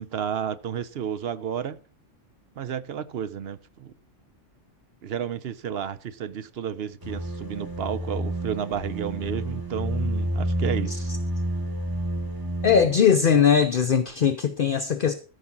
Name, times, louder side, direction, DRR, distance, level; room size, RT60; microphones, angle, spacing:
voice 1, 0.0-1.8 2.6-3.9 5.0-11.1, right 8 dB, 60° right, 0.8 m, -32 dB
sound 1, 7.0-13.0, right 1 dB, 15° right, 1.7 m, -29 dB
voice 2, 12.6-15.1, left 7 dB, 50° left, 0.8 m, -20 dB
13.5 x 5.3 x 5.9 m
omnidirectional pair, 1.3 m